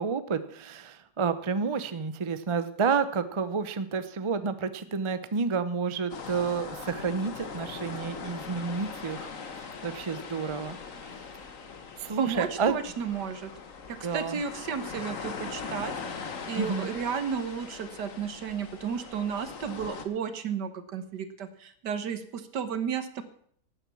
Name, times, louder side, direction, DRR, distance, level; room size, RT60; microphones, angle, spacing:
voice 1, 0.0-9.3 9.8-10.8 11.0-11.1 12.0-12.8 14.0-14.4 16.5-16.9, right 5 dB, 35° right, 12 dB, 0.5 m, -30 dB
sound 1, 6.1-20.0, left 5 dB, 55° left, 1.6 m, -41 dB
voice 2, 12.2-13.5 13.9-23.2, right 7 dB, 85° right, 11 dB, 1.8 m, -33 dB
12.5 x 8.8 x 7.1 m, 0.62 s
omnidirectional pair, 1.8 m